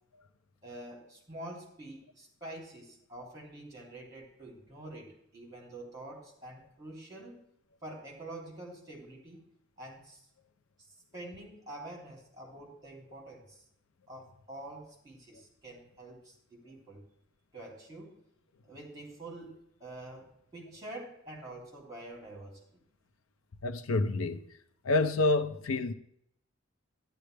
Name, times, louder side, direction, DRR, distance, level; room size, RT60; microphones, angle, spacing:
voice 1, 0.6-7.4 7.8-9.4 9.8-10.2 11.1-13.6 14.1-17.0 17.5-18.1 18.6-19.5 19.8-22.6, right 1 dB, 20° right, 3.2 m, -46 dB
voice 2, 23.6-24.4 24.8-25.9, left 2 dB, 85° left, 0.6 m, -28 dB
12.0 x 10.5 x 3.4 m
head